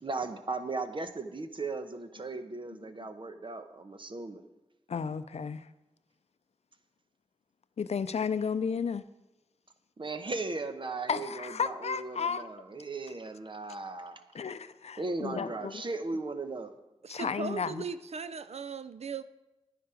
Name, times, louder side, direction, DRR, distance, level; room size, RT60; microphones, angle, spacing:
voice 1, 0.0-4.4 10.0-14.2 15.0-16.7, right 3 dB, 45° right, 8 dB, 1.0 m, -37 dB
voice 2, 4.9-5.7 7.8-9.0 11.1-12.4 14.3-15.8 17.1-17.8, left 6 dB, 75° left, 13 dB, 0.5 m, -33 dB
voice 3, 17.0-19.2, right 5 dB, 70° right, 13 dB, 0.5 m, -38 dB
10.0 x 10.0 x 5.0 m, 1.0 s
wide cardioid pair, 75°, 11 cm